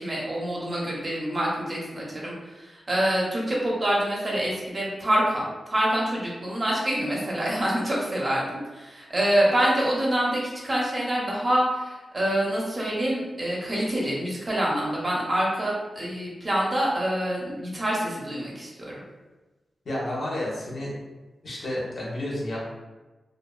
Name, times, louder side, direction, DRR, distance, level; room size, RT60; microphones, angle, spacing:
voice 1, 0.0-5.4 5.7-19.0, right 1 dB, 35° right, -4 dB, 0.7 m, -26 dB
voice 2, 19.8-20.9 21.4-22.6, left 1 dB, 65° left, -5 dB, 0.7 m, -30 dB
2.4 x 2.3 x 2.2 m, 1.2 s
wide cardioid pair, 90°, 0 cm